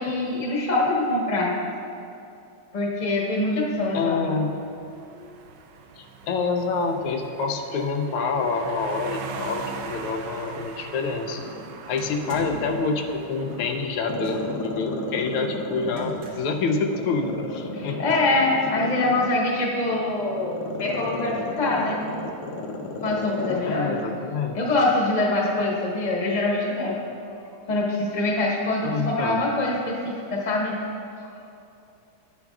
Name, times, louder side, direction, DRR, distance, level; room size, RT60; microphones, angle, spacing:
voice 1, 0.0-1.5 2.7-4.4 5.1-5.3 17.7-22.0 23.0-24.0 24.5-27.0 27.7-30.7 31.2-31.3, left 2 dB, 25° left, -4 dB, 1.0 m, -24 dB
voice 2, 3.9-4.5 6.0-11.4 11.9-18.0 23.7-24.6 28.8-29.4, left 4 dB, 85° left, 4 dB, 1.5 m, -27 dB
sound 1, 4.0-14.3, right 5 dB, 75° right, 1.0 m, -41 dB
Growling, 11.2-13.0 13.4-16.4 16.9-23.7 24.0-24.1, left 3 dB, 65° left, 1.1 m, -33 dB
sound 2, 12.0-12.8 14.2-14.7 16.0-16.7, right 2 dB, 55° right, 1.4 m, -41 dB
10.5 x 8.8 x 2.3 m, 2.6 s
omnidirectional pair, 2.4 m